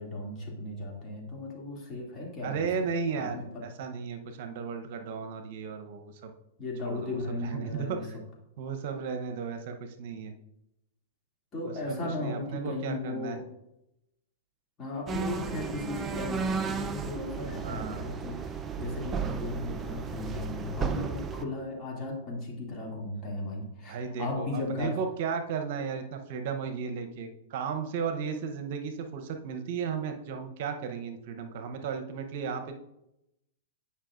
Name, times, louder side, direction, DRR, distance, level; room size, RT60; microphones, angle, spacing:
voice 1, 0.0-2.7 3.1-3.6 6.6-8.1 11.5-13.4 14.8-24.9, left 2 dB, 25° left, -2 dB, 2.5 m, -36 dB
voice 2, 2.4-6.3 6.8-8.2 8.6-10.3 11.7-13.4 17.6-18.0 23.9-32.7, right 6 dB, 55° right, 6 dB, 0.8 m, -35 dB
sound 1, 15.1-21.4, right 5 dB, 20° right, 0.5 m, -34 dB
9.9 x 5.5 x 2.5 m, 0.85 s
hypercardioid pair, 110°, 0 cm